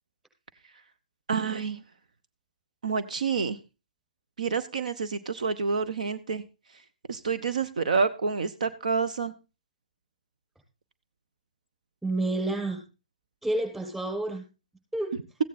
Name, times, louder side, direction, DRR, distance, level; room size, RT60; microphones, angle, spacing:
voice 1, 1.3-1.8 2.8-3.6 4.4-6.4 7.1-9.3, right 5 dB, 70° right, 12 dB, 0.8 m, -28 dB
voice 2, 12.0-12.8 13.4-14.4 14.9-15.2, right 2 dB, 5° right, 1 dB, 5.7 m, -29 dB
15.0 x 9.3 x 4.2 m, 0.30 s
figure-of-eight pair, 125°, 4 cm